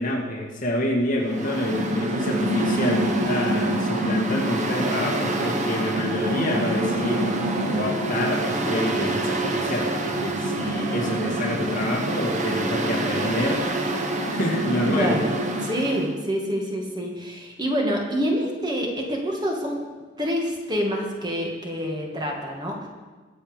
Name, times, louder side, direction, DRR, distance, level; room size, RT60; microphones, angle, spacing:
voice 1, 0.0-13.7 14.3-15.2, left 1 dB, 45° left, 0 dB, 2.1 m, -27 dB
Mechanical fan, 1.2-16.1, right 1 dB, 40° right, 1.3 m, -26 dB
voice 2, 14.9-15.3 15.6-19.8 20.2-22.9, equal, 20° right, 0 dB, 2.1 m, -27 dB
22.0 x 7.7 x 5.2 m, 1.3 s
head